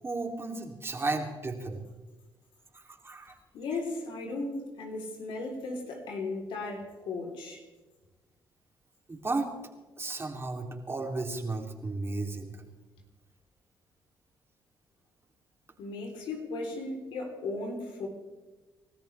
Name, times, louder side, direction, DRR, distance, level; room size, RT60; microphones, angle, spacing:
voice 1, 0.0-1.8 2.7-3.3 9.1-9.5 10.0-12.5, right 3 dB, 30° right, 2.9 m, -34 dB
voice 2, 3.5-7.6 15.8-18.1, left 3 dB, 75° left, 3.6 m, -36 dB
28.5 x 13.5 x 3.4 m
supercardioid pair, 60°, 9 cm